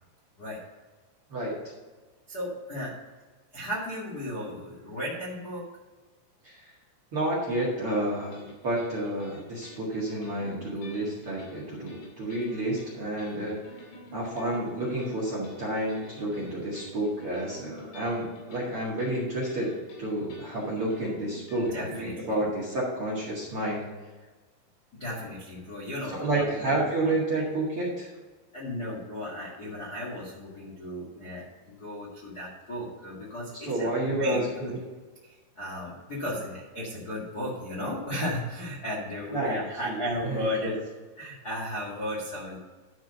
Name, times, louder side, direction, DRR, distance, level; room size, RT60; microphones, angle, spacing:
voice 1, 2.3-2.9 3.5-5.6 21.5-22.4 25.0-26.5 26.7-27.4 28.5-34.7 35.3-40.8 41.2-42.6, left 1 dB, 55° left, -5 dB, 1.0 m, -35 dB
voice 2, 7.1-13.6 14.1-19.7 20.0-23.8 26.1-28.1 33.6-34.8 39.3-39.6 39.8-40.0 40.2-40.7, right 1 dB, 50° right, -4 dB, 1.7 m, -30 dB
sound 1, 7.9-22.1, left 1 dB, 90° left, 5.0 m, -48 dB
12.0 x 4.9 x 5.4 m, 1.3 s
omnidirectional pair, 5.4 m